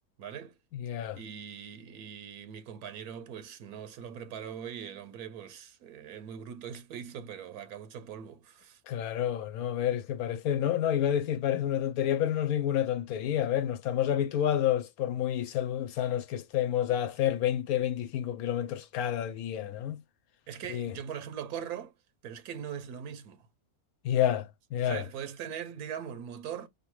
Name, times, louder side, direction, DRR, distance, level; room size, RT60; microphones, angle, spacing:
voice 1, 0.2-0.6 1.1-8.8 20.5-21.9 22.2-23.5 24.8-26.7, right 8 dB, 85° right, 1.2 m, -41 dB
voice 2, 0.7-1.2 8.9-20.0 20.7-20.9 24.0-25.0, left 10 dB, 80° left, 1.1 m, -29 dB
5.1 x 2.9 x 3.0 m
omnidirectional pair, 1.5 m